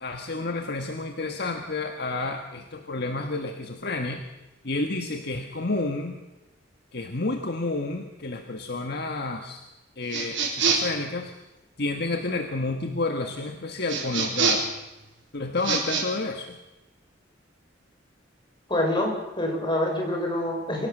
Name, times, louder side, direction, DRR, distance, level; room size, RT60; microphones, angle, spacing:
voice 1, 0.0-4.3 4.6-6.2 6.9-9.6 10.0-11.3 11.8-14.7 15.3-16.6, left 2 dB, 55° left, 4 dB, 1.6 m, -30 dB
sound 1, 10.1-11.0 13.9-14.8 15.6-16.1, right 5 dB, 65° right, 4.4 m, -25 dB
voice 2, 18.7-20.9, left 1 dB, 25° left, 1 dB, 5.7 m, -26 dB
25.0 x 17.0 x 6.7 m, 1.0 s
head